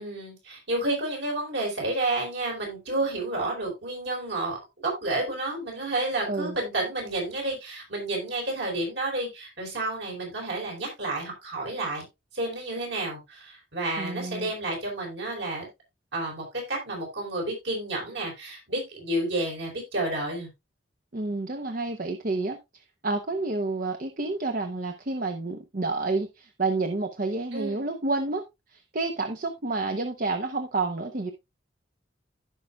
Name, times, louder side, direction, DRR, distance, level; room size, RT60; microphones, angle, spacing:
voice 1, 0.0-12.1 12.3-15.7 16.1-20.5 27.5-27.8, right 2 dB, 70° right, -1 dB, 4.5 m, -30 dB
voice 2, 14.0-14.5 21.1-28.4 28.7-31.3, right 3 dB, 45° right, 5 dB, 0.8 m, -29 dB
15.0 x 5.5 x 2.4 m, 0.22 s
head